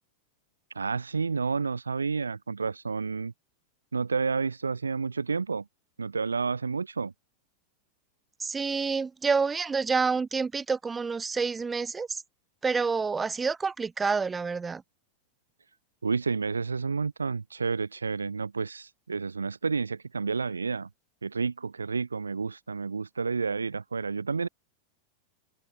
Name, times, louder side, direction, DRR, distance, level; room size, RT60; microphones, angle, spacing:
voice 1, 0.7-3.3 3.9-5.6 6.0-7.1 16.0-20.9 21.2-24.5, right 4 dB, 75° right, 1.4 m, -30 dB
voice 2, 8.4-12.2 12.6-14.8, right 5 dB, 15° right, 2.8 m, -28 dB
figure-of-eight pair, 90°, 0 cm